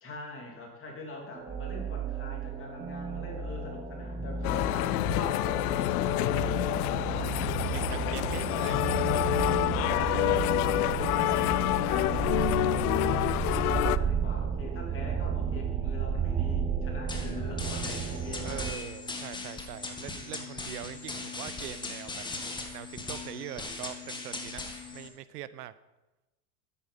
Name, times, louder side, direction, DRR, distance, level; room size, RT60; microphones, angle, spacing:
voice 1, 0.0-7.3 7.6-8.6 9.6-18.8, left 2 dB, 25° left, 0 dB, 2.9 m, -43 dB
sound 1, 1.3-18.7, right 6 dB, 15° right, 0.5 m, -33 dB
sound 2, 4.4-14.0, left 16 dB, 75° left, 0.6 m, -27 dB
voice 2, 7.7-9.0 18.4-22.2 22.7-24.6 24.9-25.7, right 13 dB, 85° right, 16 dB, 0.8 m, -42 dB
sound 3, 17.1-25.1, left 3 dB, 10° left, 1.5 m, -39 dB
9.6 x 8.6 x 5.3 m, 1.0 s
supercardioid pair, 120°, 46 cm